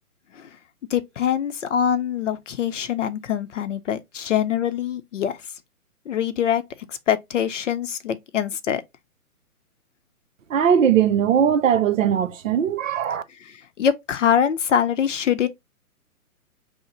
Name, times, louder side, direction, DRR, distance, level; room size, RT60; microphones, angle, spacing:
voice 1, 0.9-5.5 6.1-6.6 6.9-8.8 13.3-15.5, left 9 dB, 55° left, 0.6 m, -24 dB
voice 2, 10.5-13.2, right 8 dB, 60° right, 0.6 m, -19 dB
5.4 x 2.1 x 2.9 m
hypercardioid pair, 135°, 44 cm